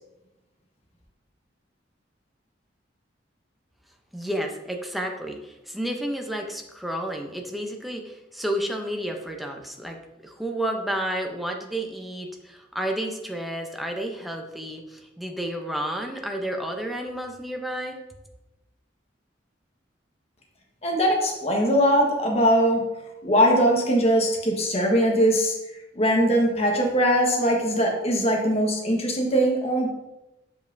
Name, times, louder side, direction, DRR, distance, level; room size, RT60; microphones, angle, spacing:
voice 1, 4.1-18.0, right 1 dB, ahead, 2 dB, 0.6 m, -31 dB
voice 2, 20.8-22.8 23.2-25.5 25.9-29.9, equal, 35° left, 0 dB, 1.2 m, -21 dB
7.2 x 5.2 x 2.6 m, 0.97 s
head